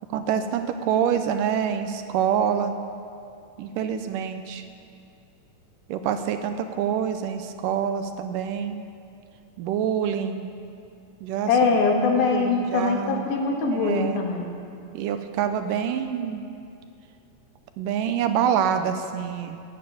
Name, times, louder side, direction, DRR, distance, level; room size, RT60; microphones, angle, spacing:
voice 1, 0.1-2.8 3.6-4.6 5.9-8.8 9.6-10.5 11.2-11.5 12.1-13.3 13.7-14.2 14.9-16.4 17.8-19.6, right 8 dB, 80° right, 8 dB, 2.1 m, -26 dB
voice 2, 11.5-14.5, left 4 dB, 90° left, 1 dB, 3.4 m, -22 dB
13.5 x 8.8 x 9.4 m, 2.5 s
omnidirectional pair, 4.1 m